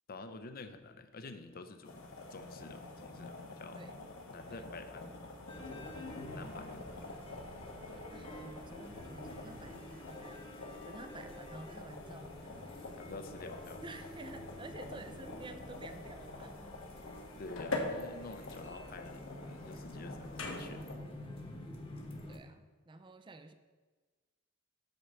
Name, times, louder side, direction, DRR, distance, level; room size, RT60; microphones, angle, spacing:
voice 1, 0.1-3.8 4.3-5.3 5.9-7.2 12.9-13.8 17.3-20.8, left 3 dB, 45° left, 9 dB, 0.6 m, -49 dB
sound 1, 1.8-21.0, left 2 dB, 75° left, 1.2 m, -46 dB
sound 2, 5.5-22.4, left 1 dB, 25° left, 1.1 m, -48 dB
voice 2, 7.9-12.6 13.8-16.7 22.3-23.5, right 2 dB, 25° right, 9 dB, 0.5 m, -51 dB
8.0 x 4.5 x 6.6 m, 1.4 s
head